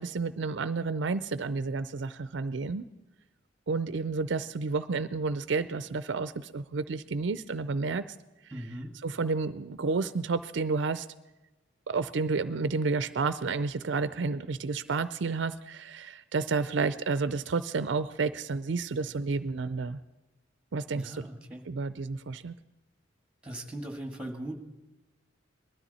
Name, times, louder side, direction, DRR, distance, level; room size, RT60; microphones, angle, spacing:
voice 1, 0.0-2.9 3.7-8.0 9.0-11.1 11.9-20.0 20.7-21.3 21.7-22.5, right 4 dB, 65° right, 14 dB, 0.5 m, -30 dB
voice 2, 8.5-8.9 20.9-21.7 23.4-24.6, right 1 dB, 5° right, 4 dB, 1.9 m, -39 dB
20.0 x 13.0 x 4.2 m, 1.1 s
head